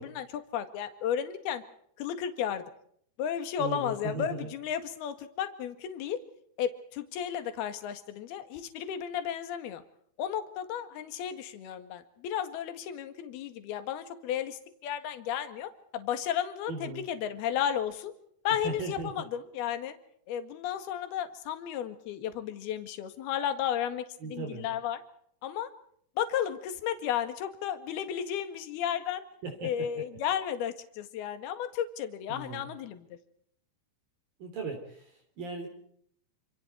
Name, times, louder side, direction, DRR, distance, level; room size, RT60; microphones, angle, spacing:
voice 1, 0.0-1.6 2.0-2.6 3.2-6.2 6.6-9.8 10.2-18.1 18.5-20.0 20.3-25.0 25.4-25.7 26.2-29.3 29.6-33.2, left 9 dB, 65° left, 9 dB, 3.6 m, -33 dB
voice 2, 3.6-4.5 16.7-17.1 18.6-19.1 24.2-24.7 29.4-29.9 32.3-32.7 34.4-35.7, right 3 dB, 50° right, 4 dB, 4.8 m, -37 dB
28.0 x 27.0 x 4.6 m, 0.65 s
omnidirectional pair, 5.3 m